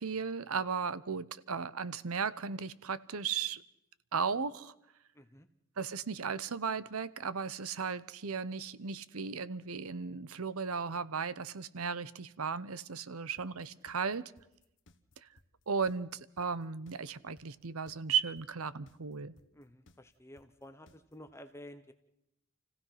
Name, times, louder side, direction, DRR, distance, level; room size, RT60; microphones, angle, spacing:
voice 1, 0.0-3.6 4.1-4.7 5.8-14.3 15.2-15.3 15.7-19.3, right 6 dB, 85° right, 17 dB, 0.8 m, -36 dB
voice 2, 5.1-5.5 19.5-21.9, left 1 dB, 10° left, 8 dB, 0.9 m, -52 dB
sound 1, 13.4-21.3, left 2 dB, 55° left, 1.2 m, -63 dB
28.5 x 16.0 x 5.8 m, 0.82 s
head